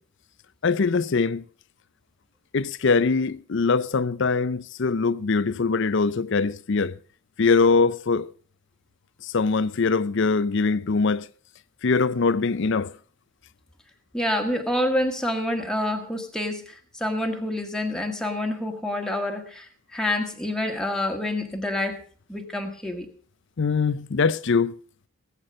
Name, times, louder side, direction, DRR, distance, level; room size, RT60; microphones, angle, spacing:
voice 1, 0.6-1.4 2.5-7.0 7.4-8.3 9.2-11.3 11.8-12.9 23.6-24.7, left 4 dB, 60° left, 0.5 m, -22 dB
voice 2, 14.1-22.0 22.3-23.1, left 1 dB, 5° left, 1.7 m, -27 dB
18.5 x 8.3 x 5.2 m
head